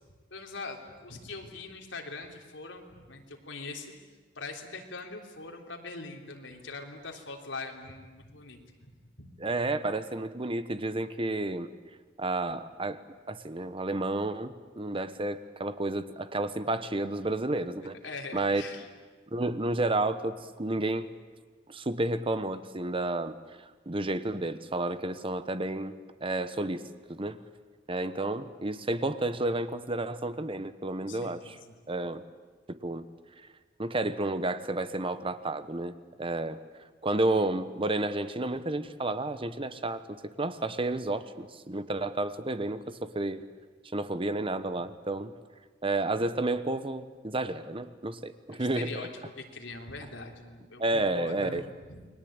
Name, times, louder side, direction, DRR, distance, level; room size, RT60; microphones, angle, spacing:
voice 1, 0.3-3.9 4.3-8.6 9.2-9.3 18.0-18.9 31.0-31.8 48.5-49.1 49.4-51.6 51.9-52.0, left 3 dB, 80° left, 2 dB, 3.4 m, -42 dB
voice 2, 9.4-11.7 12.2-13.0 13.3-18.0 18.3-18.6 19.3-21.1 21.7-23.3 23.9-25.9 26.2-27.4 27.9-31.6 31.9-32.2 32.8-33.0 33.8-36.6 37.0-43.5 43.9-45.3 45.8-48.9 50.8-51.6, right 2 dB, 30° right, 12 dB, 1.1 m, -31 dB
29.5 x 21.5 x 8.9 m, 1.3 s
head